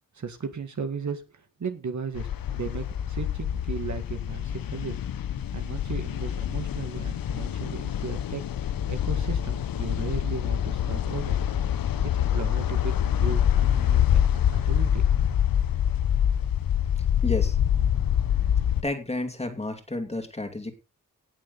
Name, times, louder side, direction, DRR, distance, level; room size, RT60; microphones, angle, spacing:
voice 1, 0.1-5.0 5.5-8.4 8.9-11.4 12.3-15.1, right 5 dB, 60° right, 7 dB, 1.9 m, -36 dB
sound 1, 2.1-18.8, left 10 dB, 90° left, 0.8 m, -25 dB
voice 2, 17.2-17.6 18.8-20.7, left 2 dB, 20° left, 5 dB, 2.6 m, -31 dB
18.0 x 7.1 x 4.1 m, 0.29 s
wide cardioid pair, 135°, 33 cm